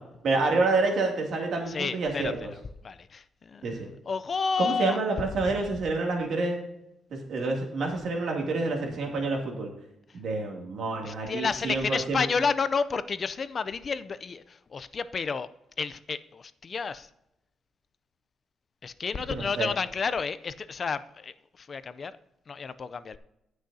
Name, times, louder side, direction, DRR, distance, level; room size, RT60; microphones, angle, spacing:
voice 1, 0.2-2.5 3.6-3.9 4.6-6.6 7.1-9.7 10.1-12.2 19.3-19.7, right 3 dB, 65° right, 1 dB, 2.5 m, -28 dB
voice 2, 1.7-2.3 2.8-5.0 11.0-15.5 15.8-17.1 18.8-21.3 21.6-22.1 22.5-23.2, left 5 dB, 40° left, 14 dB, 0.5 m, -31 dB
17.5 x 6.4 x 2.8 m, 0.85 s
cardioid pair, 115°, 0 cm